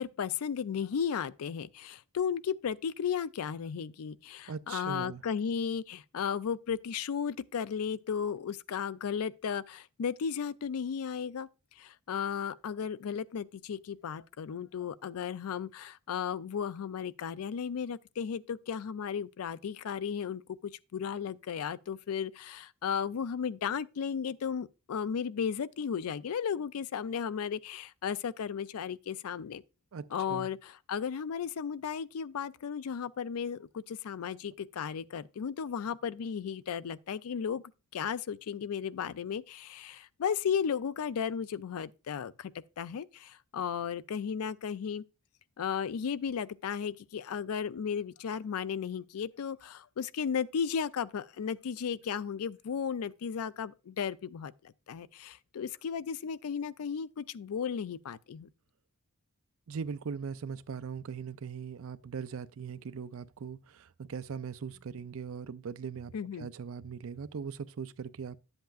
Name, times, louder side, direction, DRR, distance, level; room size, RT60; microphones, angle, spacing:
voice 1, 0.0-11.5 11.8-29.6 30.1-37.6 37.9-45.0 45.6-58.5 66.1-66.5, left 7 dB, 85° left, 0.4 m, -35 dB
voice 2, 4.5-5.2 29.9-30.5 59.7-66.1 66.4-68.4, right 6 dB, 70° right, 0.4 m, -40 dB
10.5 x 7.9 x 2.4 m
head